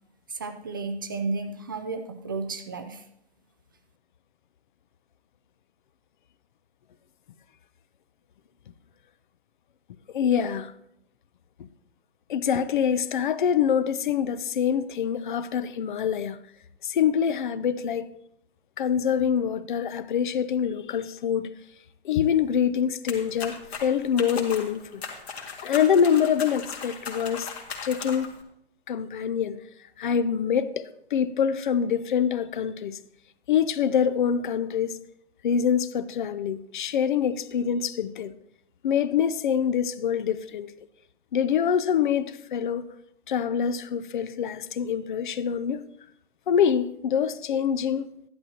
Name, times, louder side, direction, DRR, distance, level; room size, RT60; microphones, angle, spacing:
voice 1, 0.3-3.0, right 3 dB, 20° right, 0.4 m, -32 dB
voice 2, 10.1-10.7 12.3-16.4 16.8-18.1 18.8-21.5 22.0-25.0 25.6-27.5 27.8-28.3 28.9-29.6 30.0-33.0 33.5-35.0 35.4-38.3 38.8-40.7 41.3-42.9 43.3-45.8 46.5-48.1, left 8 dB, 45° left, 0.6 m, -25 dB
sound 1, 23.1-28.4, left 5 dB, 70° left, 2.1 m, -38 dB
12.5 x 11.0 x 2.8 m
hypercardioid pair, 150°, 33 cm